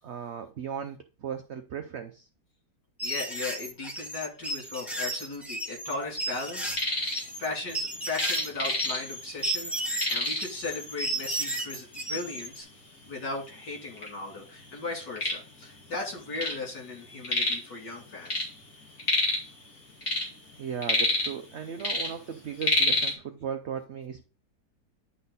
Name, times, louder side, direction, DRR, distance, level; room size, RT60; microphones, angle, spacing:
voice 1, 0.0-2.3 20.6-24.2, right 8 dB, 65° right, 0.7 m, -37 dB
voice 2, 3.0-7.1 7.4-9.7 10.1-12.7 13.1-18.5, left 3 dB, 70° left, 3.5 m, -37 dB
sound 1, 3.0-12.6, right 1 dB, ahead, 0.9 m, -34 dB
sound 2, 6.5-7.2 7.5-9.3 9.6-9.7 10.0-10.6 11.4-11.5 12.0-12.1 12.9-13.0 13.2-14.1 14.6-16.6 16.9-17.7 18.0-19.5 19.9-21.5 21.8-23.1, left 2 dB, 50° left, 2.9 m, -28 dB
10.5 x 4.2 x 4.0 m
omnidirectional pair, 1.9 m